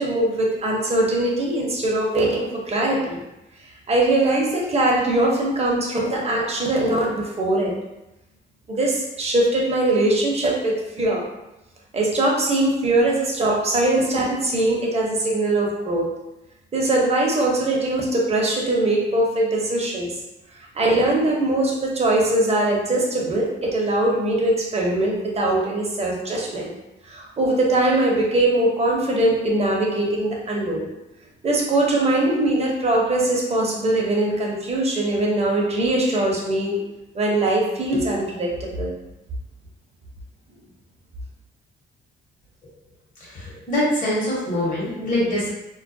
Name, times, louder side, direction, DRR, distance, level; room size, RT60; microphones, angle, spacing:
voice 1, 0.0-3.2 3.9-7.7 8.7-11.2 11.9-16.1 16.7-20.2 20.5-26.7 27.0-30.9 31.4-36.8 37.1-39.0, right 1 dB, 30° right, -2 dB, 0.7 m, -21 dB
voice 2, 43.2-45.5, left 1 dB, 45° left, -7 dB, 1.0 m, -24 dB
2.2 x 2.2 x 2.6 m, 0.94 s
cardioid pair, 90°, 20 cm